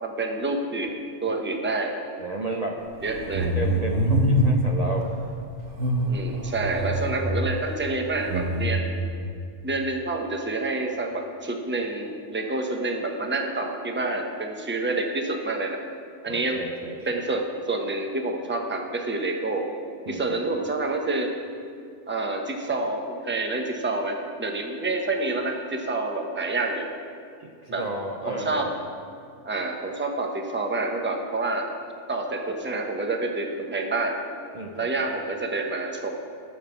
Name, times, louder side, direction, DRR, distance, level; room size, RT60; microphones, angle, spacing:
voice 1, 0.0-1.9 3.0-3.5 6.0-9.0 9.6-15.8 16.2-16.6 17.1-19.7 20.1-21.3 22.1-26.9 27.7-27.8 28.3-28.7 29.4-31.7 32.1-34.2 34.7-36.1, right 2 dB, 10° right, 2 dB, 0.9 m, -28 dB
voice 2, 2.2-2.8 3.5-5.1 16.3-16.9 20.1-20.2 27.4-28.8 34.5-34.9, right 2 dB, 35° right, 0 dB, 0.9 m, -32 dB
sound 1, 3.0-4.7 5.7-7.3 8.2-8.7, right 1 dB, 75° right, 1.6 m, -24 dB
13.0 x 6.5 x 7.1 m, 2.4 s
omnidirectional pair, 1.2 m